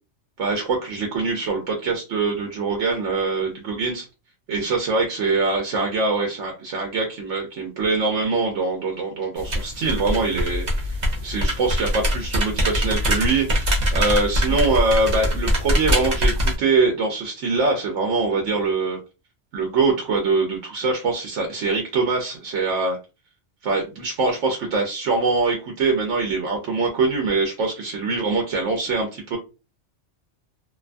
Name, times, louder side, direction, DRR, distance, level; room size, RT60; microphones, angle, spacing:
voice 1, 0.4-4.1 4.5-19.0 19.5-23.0 23.6-29.4, right 3 dB, 85° right, 2 dB, 1.0 m, -23 dB
sound 1, 9.4-16.5, equal, 45° right, 0.8 m, -23 dB
2.6 x 2.2 x 2.4 m, 0.29 s
omnidirectional pair, 1.2 m